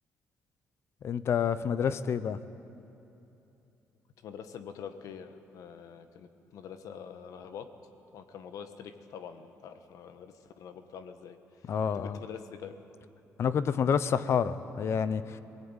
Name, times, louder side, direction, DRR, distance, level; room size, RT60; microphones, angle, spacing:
voice 1, 1.0-2.4 11.7-12.2 13.4-15.4, left 7 dB, 50° left, 14 dB, 0.8 m, -28 dB
voice 2, 4.2-7.7 8.1-11.4 11.6-12.8, left 7 dB, 75° left, 9 dB, 1.4 m, -45 dB
23.5 x 18.0 x 9.0 m, 2.9 s
cardioid pair, 140°, 6 cm